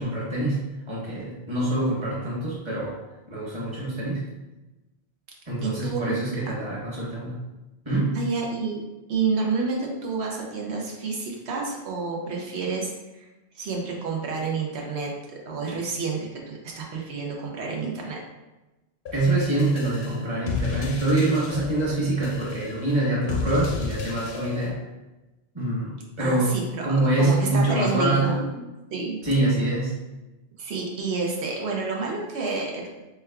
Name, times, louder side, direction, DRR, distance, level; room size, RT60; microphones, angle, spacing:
voice 1, 0.0-3.0 3.3-4.2 5.5-7.4 7.8-8.2 19.1-24.8 25.5-26.6 26.8-28.4 29.2-29.9, right 2 dB, 30° right, -5 dB, 1.1 m, -25 dB
voice 2, 5.6-6.1 8.1-8.8 9.1-13.3 13.5-15.1 15.5-18.2 26.2-29.2 30.6-33.0, right 4 dB, 90° right, -1 dB, 1.0 m, -29 dB
sound 1, 19.1-24.7, left 4 dB, 75° left, 0.9 m, -33 dB
4.4 x 3.3 x 2.3 m, 1.1 s
omnidirectional pair, 1.1 m